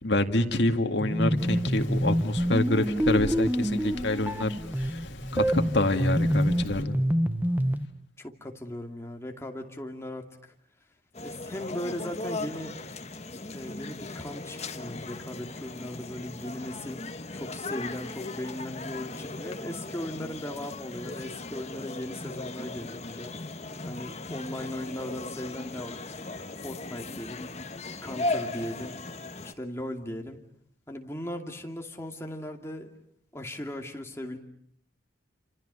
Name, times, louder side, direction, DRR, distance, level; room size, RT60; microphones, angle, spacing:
voice 1, 0.0-5.0 5.3-7.0, left 2 dB, 70° left, 6 dB, 2.1 m, -27 dB
sound 1, 1.0-7.9, equal, 10° right, 1.1 m, -27 dB
Rain, 1.4-6.8, left 1 dB, 85° left, 2.1 m, -43 dB
voice 2, 8.2-10.5 11.2-12.7 13.5-23.3 23.8-26.0 26.6-27.5 28.0-29.0 29.4-30.4 30.9-32.9 33.3-34.4, left 1 dB, 15° left, 3 dB, 2.5 m, -38 dB
sound 2, 11.1-29.5, left 2 dB, 35° left, 1.5 m, -37 dB
29.0 x 27.5 x 6.9 m, 0.65 s
head